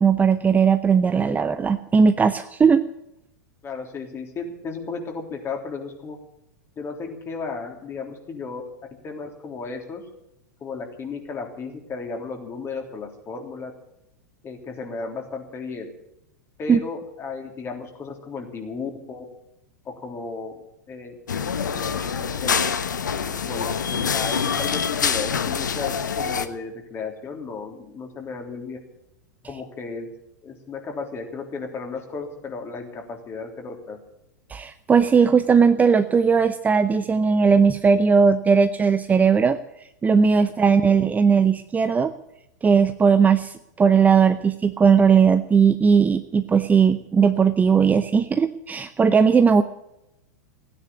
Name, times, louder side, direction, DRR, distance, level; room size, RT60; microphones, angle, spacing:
voice 1, 0.0-2.9 16.7-16.8 34.5-39.6 40.0-42.1 42.6-49.6, right 6 dB, 15° right, 10 dB, 0.7 m, -18 dB
voice 2, 3.6-6.2 6.8-8.6 9.0-10.0 10.6-13.7 14.4-15.9 16.6-19.3 19.9-22.6 23.4-28.8 29.5-30.1 30.4-34.0 40.7-41.0, left 4 dB, 25° left, 3 dB, 3.5 m, -34 dB
sound 1, 21.3-26.5, left 7 dB, 80° left, 1.1 m, -25 dB
16.0 x 10.0 x 8.4 m, 0.84 s
hypercardioid pair, 100°, 10 cm